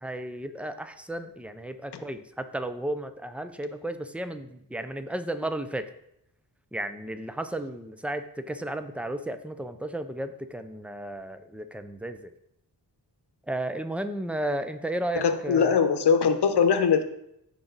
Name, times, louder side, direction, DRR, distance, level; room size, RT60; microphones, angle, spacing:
voice 1, 0.0-5.8 6.7-12.3 13.5-15.8, right 1 dB, 5° right, 10 dB, 0.5 m, -33 dB
voice 2, 15.1-17.0, left 6 dB, 85° left, 8 dB, 1.0 m, -21 dB
15.0 x 5.1 x 4.0 m, 0.78 s
wide cardioid pair, 170°, 39 cm